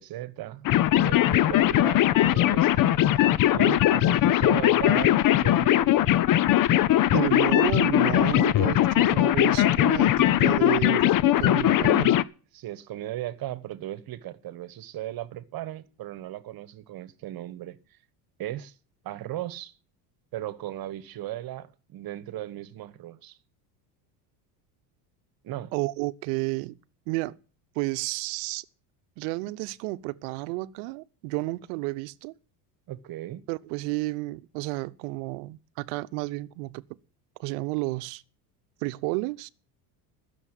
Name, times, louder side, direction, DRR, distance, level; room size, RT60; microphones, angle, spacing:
voice 1, 0.0-3.3 3.5-6.0 12.5-17.8 18.4-18.7 19.0-19.7 20.3-23.4 25.4-25.7 32.9-33.4, right 14 dB, 50° right, 1.3 m, -37 dB
sound 1, 0.6-12.2, left 13 dB, 45° left, 0.7 m, -20 dB
voice 2, 7.1-12.3 25.7-26.8 27.1-27.4 27.7-28.6 29.2-32.3 33.5-36.8 37.4-38.2 38.8-39.5, right 22 dB, 75° right, 0.9 m, -31 dB
14.5 x 7.0 x 9.1 m
supercardioid pair, 95°, 47 cm